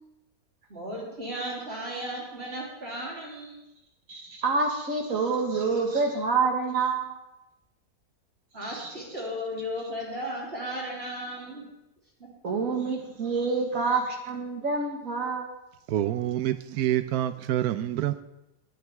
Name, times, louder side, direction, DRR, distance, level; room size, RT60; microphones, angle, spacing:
voice 1, 0.7-3.6 8.5-11.6, equal, 40° right, 3.6 m, -35 dB
voice 2, 4.1-7.2 8.6-9.0 12.4-15.5, right 4 dB, 60° right, 2.1 m, -27 dB
voice 3, 15.9-18.2, right 12 dB, 80° right, 1.1 m, -27 dB
18.0 x 9.4 x 3.5 m
omnidirectional pair, 1.6 m